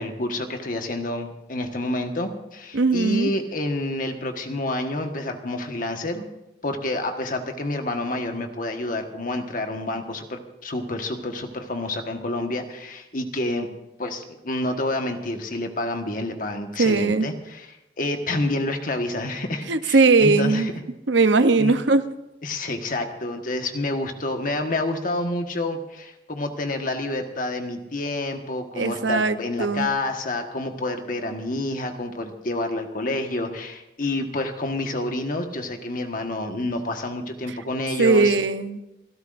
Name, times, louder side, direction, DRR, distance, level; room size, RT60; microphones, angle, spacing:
voice 1, 0.0-6.3 6.6-13.7 14.0-17.7 18.0-20.7 21.6-21.8 22.4-38.4, left 2 dB, 50° left, 5 dB, 1.5 m, -28 dB
voice 2, 2.7-3.3 16.8-17.3 19.7-20.7 21.1-22.1 28.7-29.9 38.0-38.8, right 3 dB, 80° right, 11 dB, 0.8 m, -19 dB
29.5 x 13.0 x 2.6 m, 0.94 s
head